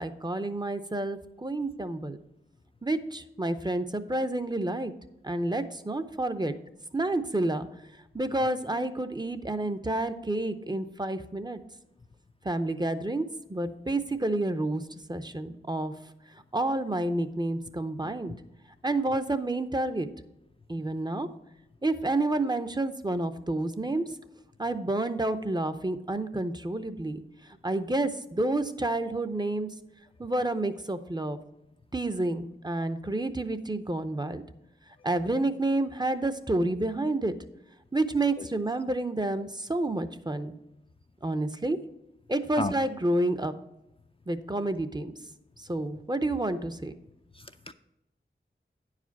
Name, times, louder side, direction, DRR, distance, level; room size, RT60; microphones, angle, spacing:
voice 1, 0.0-2.2 2.8-4.9 5.2-6.5 6.9-7.7 8.1-11.6 12.4-14.8 15.1-15.9 16.5-18.3 18.8-20.1 20.7-21.3 21.8-24.0 24.6-27.2 27.6-29.7 30.2-31.4 31.9-34.4 35.0-37.3 37.9-40.5 41.2-41.8 42.3-43.5 44.3-45.1 45.6-46.9, right 2 dB, 20° right, 10 dB, 0.6 m, -29 dB
voice 2, 47.4-47.7, left 3 dB, 25° left, 7 dB, 0.4 m, -33 dB
9.8 x 4.9 x 5.8 m, 0.90 s
wide cardioid pair, 60°, 21 cm